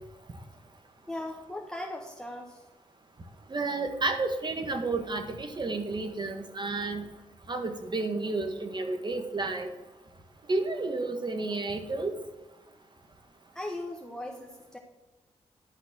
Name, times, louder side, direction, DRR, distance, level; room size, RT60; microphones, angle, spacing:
voice 1, 1.1-2.6 13.5-14.8, left 1 dB, 5° left, 1 dB, 1.3 m, -38 dB
voice 2, 3.5-7.0 7.5-9.7 10.5-12.1, right 3 dB, 40° right, 6 dB, 1.6 m, -31 dB
11.5 x 4.1 x 7.7 m, 1.2 s
cardioid pair, 65°, 12 cm